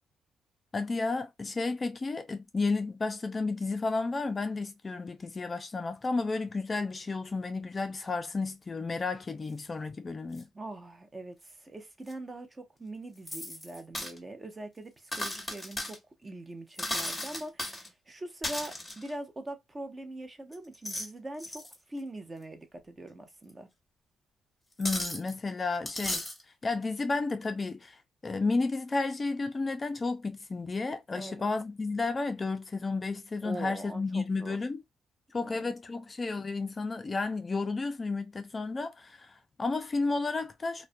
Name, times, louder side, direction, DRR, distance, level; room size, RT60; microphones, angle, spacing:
voice 1, 0.7-10.5 24.8-26.3 26.6-34.8 35.3-40.9, left 3 dB, 30° left, 0.3 m, -32 dB
sound 1, 9.6-9.7 10.4-10.5 12.1-12.2 13.3-14.2 15.1-16.0 16.7-17.9 18.4-19.1 20.5-21.1 21.4-21.7 23.5-23.6 24.8-25.3 25.8-26.4, left 1 dB, 5° left, 0.9 m, -35 dB
voice 2, 10.5-23.7 31.1-31.5 33.4-34.6 35.4-35.8, right 1 dB, 25° right, 0.6 m, -42 dB
2.3 x 2.1 x 2.5 m
cardioid pair, 90°, 0 cm